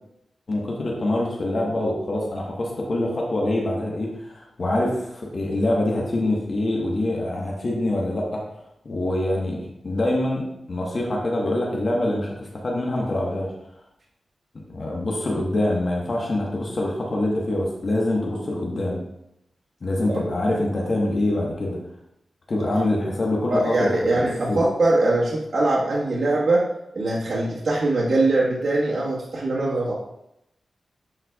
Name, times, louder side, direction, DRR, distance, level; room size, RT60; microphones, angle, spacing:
voice 1, 0.5-8.4 8.8-13.5 14.7-19.0 19.8-21.8 22.5-24.6, left 1 dB, 50° left, -2 dB, 1.2 m, -25 dB
voice 2, 23.5-26.6 26.9-29.9, right 2 dB, 60° right, -6 dB, 1.4 m, -22 dB
10.0 x 4.4 x 2.4 m, 0.81 s
cardioid pair, 80°, 0 cm